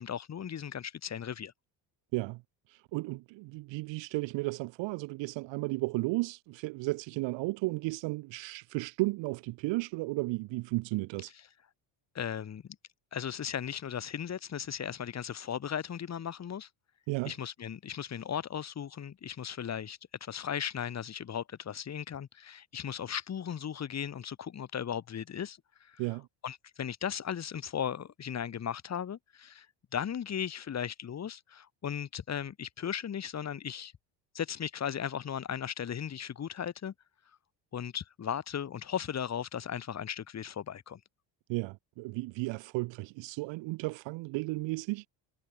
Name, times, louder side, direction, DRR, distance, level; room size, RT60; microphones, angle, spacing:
voice 1, 0.0-1.5 12.1-12.6 13.1-16.7 17.2-26.0 26.4-29.7 29.9-33.9 34.3-36.9 37.7-41.0, left 8 dB, 30° left, 1.3 m, -37 dB
voice 2, 2.7-11.3 17.1-17.3 26.0-26.3 41.5-45.0, right 23 dB, 65° right, 0.6 m, -34 dB
supercardioid pair, 90°, 50 cm